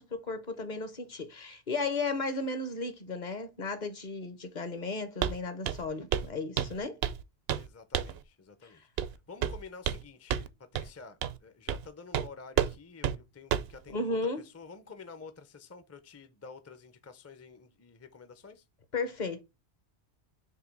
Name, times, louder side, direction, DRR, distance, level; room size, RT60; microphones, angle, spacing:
voice 1, 0.0-7.0 13.9-14.5 18.9-19.4, left 3 dB, 45° left, 0.9 m, -34 dB
Walk footsteps, 5.2-5.4 5.6-5.9 6.1-6.3 6.6-7.2 7.5-7.7 7.9-8.2 9.0-9.1 9.4-10.0 10.3-10.5 10.7-10.9 11.2-11.4 11.7-11.8 12.1-12.3 12.6-12.7 13.0-13.2 13.5-13.7, right 9 dB, 65° right, 0.8 m, -30 dB
voice 2, 7.5-18.6, left 5 dB, 20° left, 0.5 m, -50 dB
6.8 x 2.7 x 5.2 m
omnidirectional pair, 1.2 m